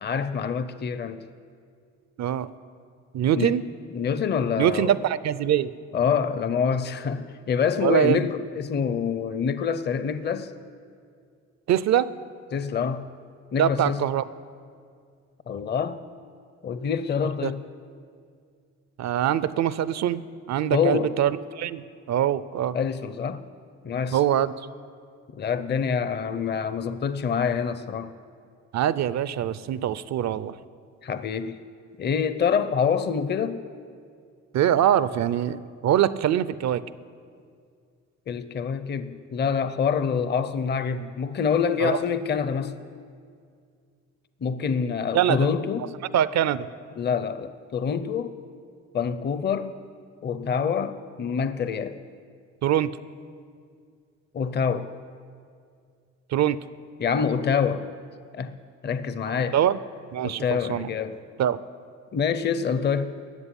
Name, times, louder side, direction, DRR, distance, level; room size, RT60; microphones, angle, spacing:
voice 1, 0.0-1.2 3.3-3.6 3.9-4.9 5.9-10.5 12.5-13.0 13.5-14.0 15.5-16.0 16.6-17.6 20.7-21.1 22.7-23.4 23.8-24.2 25.3-28.1 31.0-31.6 32.0-33.6 38.3-42.7 44.4-45.9 47.0-48.4 48.9-49.7 50.2-52.0 54.3-54.9 57.0-57.9 58.3-58.5 58.8-59.6 60.2-61.2 62.1-63.1, left 6 dB, 35° left, 12 dB, 0.6 m, -26 dB
voice 2, 3.1-3.6 4.6-5.7 7.8-8.3 11.7-12.1 13.6-14.2 17.4-17.5 19.0-20.2 20.5-22.8 24.1-24.5 28.7-30.6 34.5-36.8 41.8-42.0 45.1-45.5 46.1-46.7 52.6-52.9 56.3-56.6 59.5-59.8 60.1-60.9 61.4-61.6, right 10 dB, 65° right, 17 dB, 0.6 m, -23 dB
13.5 x 7.8 x 9.9 m, 2.2 s
cardioid pair, 90°, 30 cm